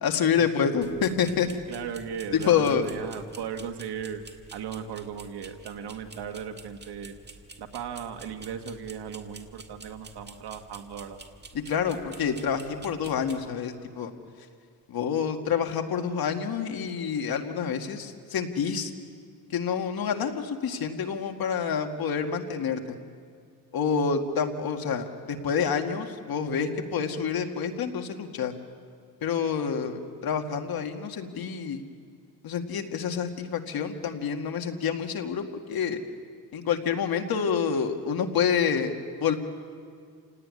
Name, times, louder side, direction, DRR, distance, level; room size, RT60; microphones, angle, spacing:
voice 1, 0.0-1.5 2.3-2.9 11.5-14.1 14.9-18.9 19.5-23.0 23.7-28.5 29.2-31.8 32.4-36.0 36.5-39.4, left 7 dB, 65° left, 4 dB, 2.2 m, -28 dB
sound 1, 0.8-13.5, right 3 dB, 25° right, 1.8 m, -49 dB
voice 2, 1.4-4.2 4.5-7.2 7.6-11.2, right 7 dB, 80° right, 6 dB, 1.8 m, -37 dB
29.0 x 18.0 x 9.8 m, 2.2 s
cardioid pair, 115°, 39 cm